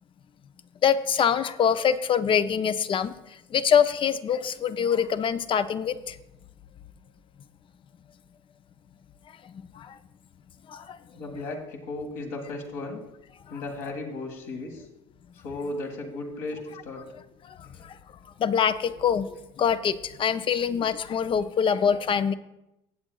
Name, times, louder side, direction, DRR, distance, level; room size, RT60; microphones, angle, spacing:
voice 1, 0.8-3.1 3.5-6.2 9.5-10.0 10.7-11.0 17.5-18.0 18.4-22.3, left 7 dB, 35° left, 12 dB, 0.6 m, -25 dB
voice 2, 11.1-13.0 13.5-14.9 15.3-17.1 17.6-17.9, left 2 dB, 65° left, 1 dB, 1.8 m, -35 dB
16.5 x 7.8 x 2.3 m, 0.89 s
hypercardioid pair, 85°, 16 cm